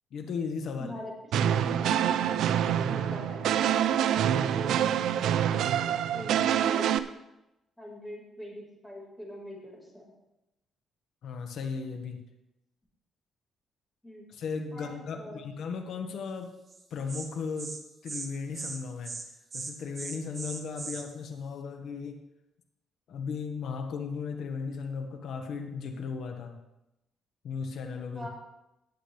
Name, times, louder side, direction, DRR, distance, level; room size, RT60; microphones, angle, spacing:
voice 1, 0.1-0.9 1.3-1.8 11.2-12.2 14.3-16.5 16.9-17.8 18.0-19.1 19.5-22.2 23.1-26.6 27.4-28.3, left 5 dB, 70° left, 5 dB, 1.6 m, -36 dB
voice 2, 0.8-2.6 2.9-3.5 4.1-5.7 6.1-7.0 7.8-10.1 14.0-14.3 14.7-15.4 28.1-28.3, equal, 5° left, -3 dB, 5.1 m, -43 dB
sound 1, 1.3-7.0, right 10 dB, 80° right, 0.5 m, -26 dB
Insect, 16.7-16.8 17.1-17.3 17.6-17.8 18.1-18.3 18.5-18.8 19.0-19.2 19.5-21.0, right 4 dB, 35° right, 1.8 m, -38 dB
19.0 x 7.6 x 3.5 m, 0.90 s
cardioid pair, 90°, 0 cm